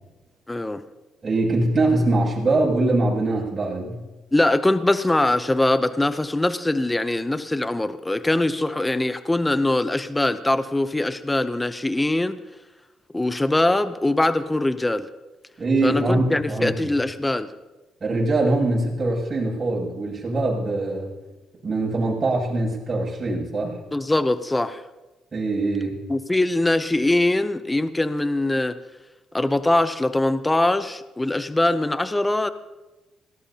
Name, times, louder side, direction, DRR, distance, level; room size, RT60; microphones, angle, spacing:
voice 1, 0.5-0.8 4.3-12.4 13.1-15.1 15.8-17.5 23.9-24.8 26.1-28.8 29.3-32.5, left 2 dB, 15° left, 12 dB, 0.7 m, -22 dB
voice 2, 1.2-4.0 15.6-16.9 18.0-21.1 21.6-23.8 25.3-26.0, right 2 dB, 35° right, -5 dB, 7.3 m, -23 dB
25.0 x 18.0 x 2.9 m, 1.1 s
cardioid pair, 90°, 0 cm